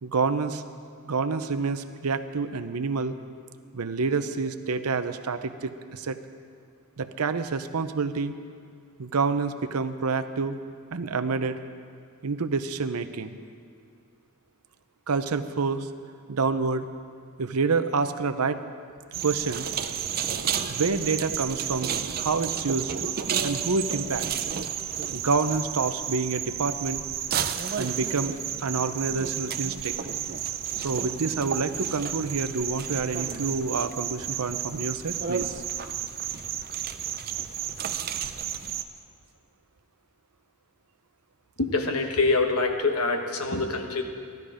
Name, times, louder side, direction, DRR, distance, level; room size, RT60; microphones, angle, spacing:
voice 1, 0.0-0.6 1.1-3.1 3.7-6.2 7.0-8.3 9.0-10.6 10.9-11.6 12.2-13.4 15.1-15.9 16.3-16.8 17.4-18.6 19.2-19.7 20.7-22.9 23.4-24.3 25.1-27.0 27.8-28.4 28.6-29.9 30.8-35.6, right 4 dB, 85° right, 10 dB, 0.7 m, -28 dB
sound 1, 19.1-38.8, right 8 dB, 45° right, 0.6 m, -31 dB
voice 2, 41.6-44.0, left 3 dB, 85° left, 4 dB, 1.3 m, -25 dB
16.0 x 12.0 x 5.0 m, 2.3 s
head